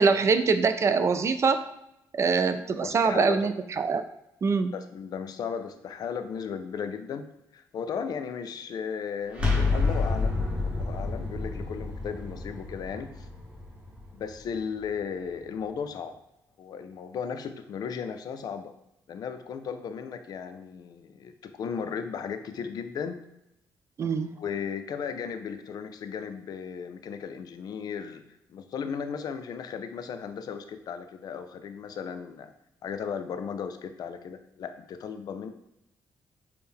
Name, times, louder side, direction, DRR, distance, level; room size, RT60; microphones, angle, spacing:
voice 1, 0.0-1.6 2.1-4.0 4.4-4.7 24.0-24.3, right 5 dB, 40° right, 10 dB, 0.3 m, -24 dB
voice 2, 2.8-3.5 4.7-10.4 10.6-13.3 14.1-16.2 16.6-18.7 19.1-23.2 24.4-28.2 28.5-32.5 32.8-35.5, left 6 dB, 60° left, 9 dB, 0.4 m, -35 dB
sound 1, 9.3-15.1, left 3 dB, 15° right, 0.9 m, -29 dB
4.3 x 2.1 x 3.5 m, 0.85 s
cardioid pair, 80°, 7 cm